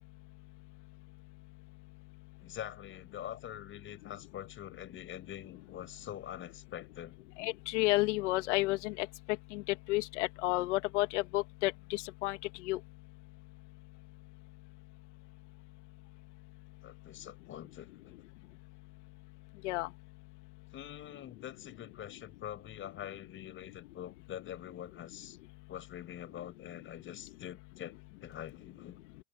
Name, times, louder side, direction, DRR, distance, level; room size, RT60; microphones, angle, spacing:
voice 1, 2.4-7.2 16.8-18.2 20.7-25.4 25.7-29.0, left 11 dB, 35° left, 6.7 m, -45 dB
voice 2, 7.4-9.1 9.5-9.6 9.9-12.4 12.6-12.8 19.6-19.9, left 20 dB, 70° left, 2.1 m, -31 dB
supercardioid pair, 125°, 36 cm